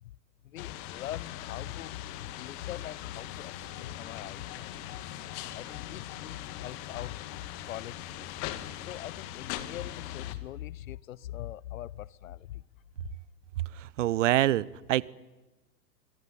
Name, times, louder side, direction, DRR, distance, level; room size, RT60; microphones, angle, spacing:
voice 1, 0.4-2.0 2.3-4.7 5.5-8.3 8.7-12.6, left 13 dB, 55° left, 0.8 m, -42 dB
sound 1, 0.6-10.3, left 12 dB, 35° left, 2.0 m, -41 dB
voice 2, 13.6-15.1, right 14 dB, 50° right, 0.8 m, -26 dB
25.0 x 21.5 x 9.9 m
figure-of-eight pair, 105°, 49 cm